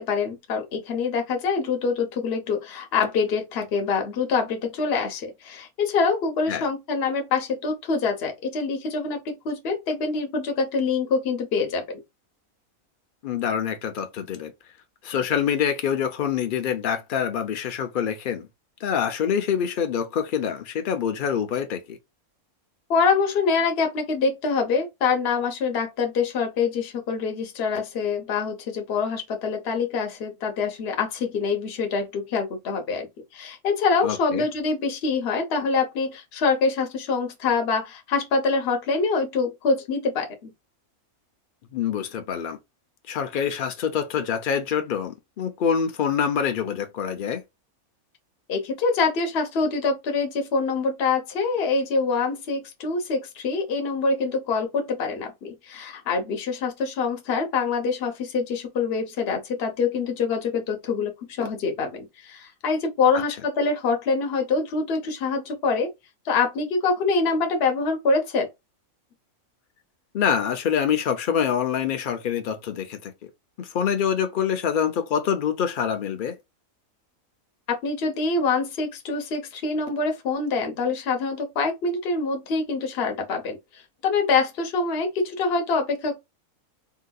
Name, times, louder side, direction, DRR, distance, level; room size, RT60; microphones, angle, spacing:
voice 1, 0.0-12.0 22.9-33.1 33.3-40.5 48.5-65.9 66.2-68.5 77.7-86.2, left 4 dB, 50° left, 1.0 m, -25 dB
voice 2, 13.2-14.5 15.0-18.5 18.8-22.0 34.0-34.4 41.7-42.6 43.1-47.4 70.1-73.3 73.6-76.4, left 8 dB, 85° left, 0.4 m, -26 dB
3.8 x 2.5 x 2.3 m
omnidirectional pair, 1.5 m